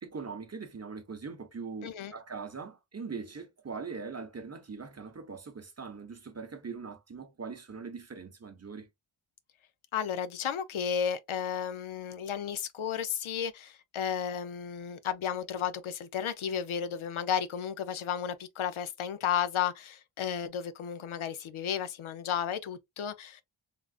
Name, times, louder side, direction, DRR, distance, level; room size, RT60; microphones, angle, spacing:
voice 1, 0.0-8.9, right 5 dB, 35° right, 0.8 m, -41 dB
voice 2, 1.8-2.1 9.9-23.4, left 8 dB, 80° left, 0.6 m, -33 dB
3.6 x 2.4 x 2.3 m
wide cardioid pair, 65°, 47 cm